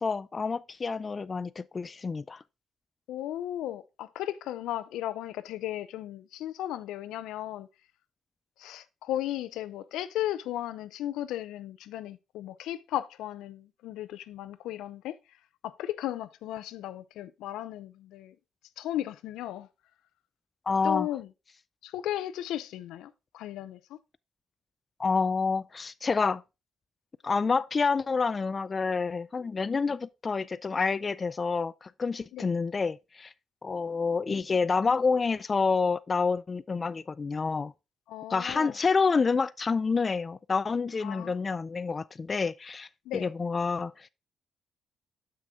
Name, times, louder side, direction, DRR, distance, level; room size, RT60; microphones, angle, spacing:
voice 1, 0.0-2.4 20.7-21.1 25.0-26.4 27.2-33.3 33.6-37.7 38.3-44.1, left 4 dB, 35° left, 0.3 m, -28 dB
voice 2, 3.1-7.7 8.6-15.2 15.6-18.3 18.8-19.7 20.8-21.3 21.8-24.0 29.9-30.0 32.3-32.5 38.1-38.7 41.0-41.3 43.1-43.3, left 13 dB, 90° left, 0.5 m, -35 dB
7.0 x 6.1 x 3.5 m
cardioid pair, 90°, 0 cm